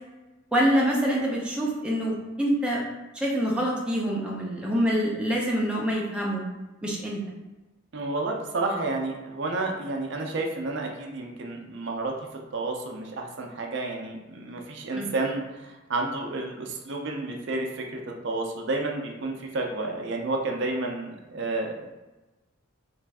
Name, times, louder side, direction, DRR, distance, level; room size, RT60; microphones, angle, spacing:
voice 1, 0.5-2.8 3.1-6.4 6.8-7.2 14.9-15.1, equal, 5° right, -4 dB, 0.6 m, -26 dB
voice 2, 7.9-12.1 12.5-22.0, right 2 dB, 65° right, 1 dB, 0.5 m, -31 dB
3.2 x 2.5 x 3.4 m, 1.1 s
head